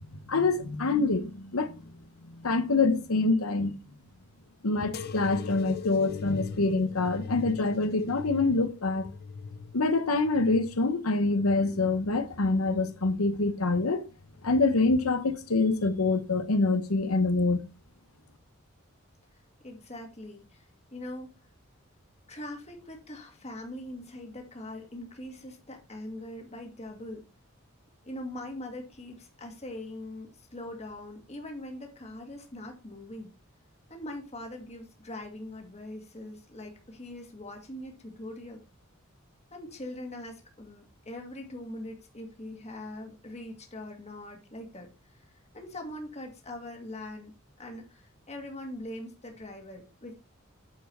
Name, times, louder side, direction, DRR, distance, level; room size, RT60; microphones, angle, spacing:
voice 1, 0.3-2.0 2.3-3.7 4.6-9.1 9.7-14.0 14.4-17.6, left 3 dB, 85° left, 1.0 m, -26 dB
sound 1, 4.9-12.1 12.7-13.4 14.2-14.7 15.7-15.8, left 5 dB, 50° left, 0.6 m, -42 dB
voice 2, 19.6-20.6 20.9-21.3 22.3-27.3 28.0-33.3 33.9-38.6 39.5-44.9 45.5-47.3 47.6-50.1, left 1 dB, 30° left, 1.9 m, -42 dB
8.9 x 4.8 x 4.3 m
head